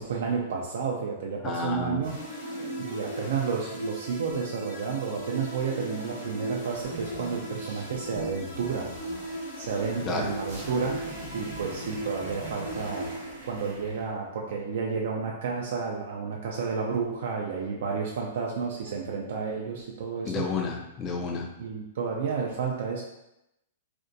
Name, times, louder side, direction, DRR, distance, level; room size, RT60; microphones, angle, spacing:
voice 1, 0.0-2.2 2.5-8.9 9.6-11.0 11.3-13.1 13.4-20.5 21.6-23.0, right 5 dB, 70° right, -1 dB, 0.3 m, -31 dB
voice 2, 1.4-2.1 10.1-10.3 20.3-21.5, left 4 dB, 25° left, 1 dB, 0.3 m, -31 dB
sound 1, 2.0-13.9, right 1 dB, 70° left, 1.0 m, -38 dB
sound 2, 6.7-14.1, right 3 dB, 50° right, 0.7 m, -43 dB
2.5 x 2.1 x 2.6 m, 0.88 s
hypercardioid pair, 130°, 0 cm